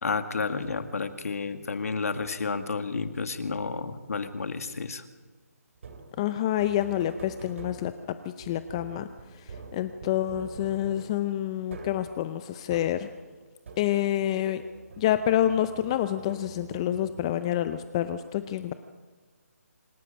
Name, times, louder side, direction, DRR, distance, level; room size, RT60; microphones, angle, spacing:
voice 1, 0.0-5.1, left 4 dB, 65° left, 9 dB, 2.0 m, -31 dB
sound 1, 0.6-1.1 2.1-2.6 3.5-4.0 5.8-14.3 14.6-17.7, right 4 dB, 50° right, 3.4 m, -46 dB
voice 2, 6.2-9.1 9.4-13.1 13.8-14.6 15.0-18.7, left 12 dB, 20° left, 11 dB, 0.6 m, -28 dB
26.5 x 12.5 x 8.8 m, 1.4 s
hypercardioid pair, 160°, 9 cm